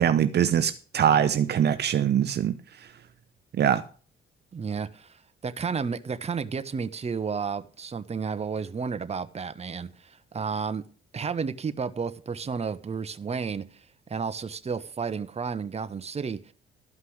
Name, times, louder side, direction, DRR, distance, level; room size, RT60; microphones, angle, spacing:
voice 1, 0.0-2.5 3.6-3.8, right 9 dB, 55° right, 0.8 m, -22 dB
voice 2, 4.5-5.2 5.4-10.8 11.1-16.5, right 5 dB, 30° right, 1.1 m, -32 dB
13.0 x 5.4 x 7.9 m
cardioid pair, 90°, 20 cm